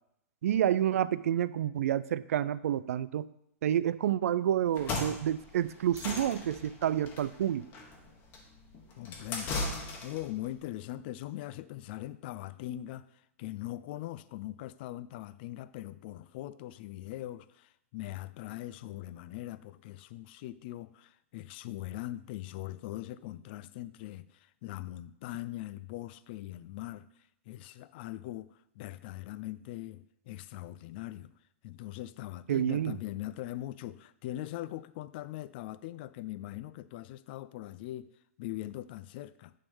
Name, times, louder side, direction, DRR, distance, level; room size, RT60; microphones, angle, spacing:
voice 1, 0.4-3.3 3.6-7.7 32.5-33.0, right 10 dB, 80° right, 0.4 m, -29 dB
sound 1, 4.7-10.3, left 3 dB, 25° left, 1.3 m, -38 dB
voice 2, 9.0-13.1 13.4-27.1 27.5-31.3 31.6-38.1 38.4-39.5, left 15 dB, 45° left, 0.3 m, -41 dB
9.9 x 3.6 x 5.4 m
hypercardioid pair, 150°, 8 cm